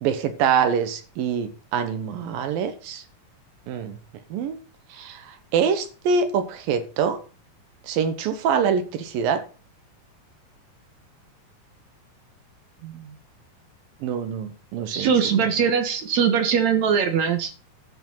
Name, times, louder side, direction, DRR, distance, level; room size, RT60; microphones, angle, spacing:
voice 1, 0.0-3.0 3.7-4.0 4.3-4.6 4.9-7.2 7.9-9.4 14.0-15.1 15.4-15.6, right 6 dB, 80° right, 9 dB, 3.0 m, -25 dB
voice 2, 14.9-17.5, right 7 dB, 60° right, 7 dB, 2.2 m, -21 dB
11.5 x 6.1 x 5.7 m, 0.35 s
omnidirectional pair, 4.1 m